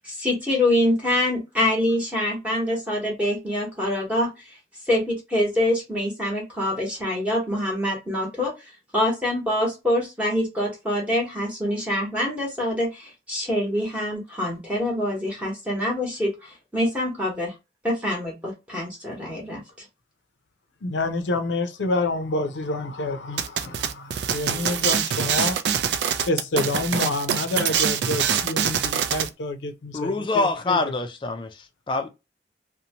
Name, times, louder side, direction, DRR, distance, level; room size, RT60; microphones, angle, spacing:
voice 1, 0.0-4.6 4.8-17.5 17.8-19.9, left 1 dB, 10° right, 0.9 m, -25 dB
voice 2, 20.8-25.6 26.3-30.8, left 2 dB, 90° left, 0.5 m, -28 dB
sound 1, 23.4-29.3, right 8 dB, 75° right, 0.4 m, -24 dB
voice 3, 29.9-32.1, left 3 dB, 25° left, 0.4 m, -25 dB
2.7 x 2.1 x 2.8 m
head